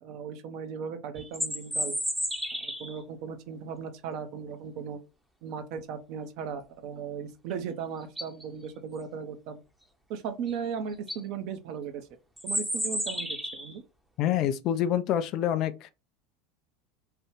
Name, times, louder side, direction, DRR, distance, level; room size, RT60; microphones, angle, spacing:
voice 1, 0.0-1.9 2.6-5.0 5.4-9.6 10.1-12.1 12.4-13.8, right 7 dB, 50° right, 0.6 m, -37 dB
sound 1, 1.1-3.0 7.5-7.6 8.0-8.4 10.5-10.6 10.9-11.2 12.4-13.7, equal, 5° right, 0.7 m, -32 dB
voice 2, 14.2-15.9, left 10 dB, 45° left, 0.4 m, -27 dB
3.3 x 2.3 x 3.0 m
figure-of-eight pair, 75°, 0 cm